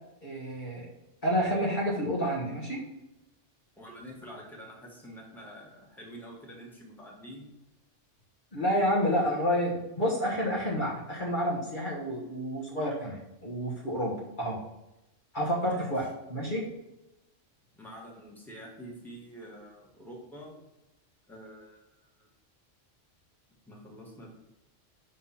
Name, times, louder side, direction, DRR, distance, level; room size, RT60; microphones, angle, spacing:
voice 1, 0.2-0.8 1.2-2.8 8.5-14.6 15.3-16.7, equal, 40° left, -4 dB, 1.3 m, -29 dB
voice 2, 3.7-7.5 15.7-16.0 17.7-20.5 21.3-22.3 23.7-24.3, equal, ahead, -3 dB, 1.6 m, -47 dB
5.8 x 3.6 x 5.7 m, 0.95 s
omnidirectional pair, 1.3 m